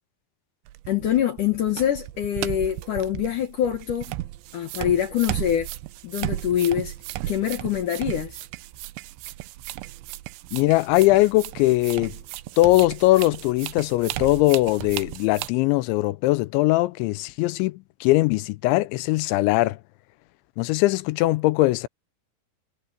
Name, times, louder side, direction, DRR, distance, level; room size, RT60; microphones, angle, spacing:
sound 1, 0.7-15.5, right 16 dB, 80° right, 3.0 m, -35 dB
voice 1, 0.9-4.2 4.5-5.7 6.0-6.9 7.3-8.5, left 10 dB, 70° left, 2.0 m, -25 dB
voice 2, 10.5-12.2 12.6-19.8 20.6-21.9, left 19 dB, 85° left, 2.9 m, -21 dB
omnidirectional pair, 5.3 m